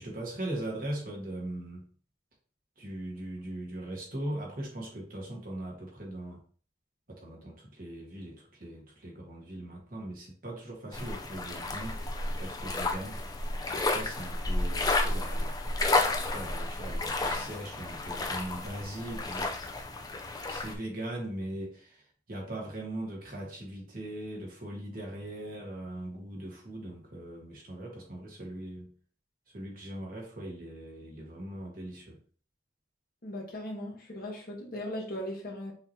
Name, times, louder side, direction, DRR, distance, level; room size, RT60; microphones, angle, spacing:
voice 1, 0.0-1.9 2.8-6.4 7.1-12.0 12.3-13.2 13.7-15.6 16.3-19.5 20.5-28.9 29.5-32.2, right 1 dB, 45° right, 1.4 m, -40 dB
sound 1, 10.9-20.8, left 2 dB, 20° left, 0.4 m, -31 dB
voice 2, 33.2-35.7, left 1 dB, 45° left, 1.2 m, -38 dB
5.7 x 2.9 x 2.8 m
head